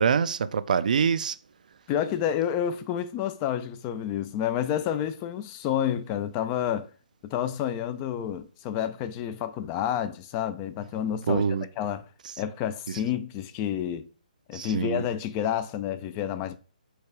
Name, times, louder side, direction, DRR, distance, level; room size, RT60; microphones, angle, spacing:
voice 1, 0.0-1.4 11.3-11.7 14.5-15.0, right 6 dB, 65° right, 0.3 m, -25 dB
voice 2, 1.9-6.9 7.2-11.4 11.8-12.1 12.4-14.1 14.5-16.6, left 10 dB, 25° left, 0.3 m, -29 dB
4.6 x 2.3 x 4.6 m
hypercardioid pair, 150°, 5 cm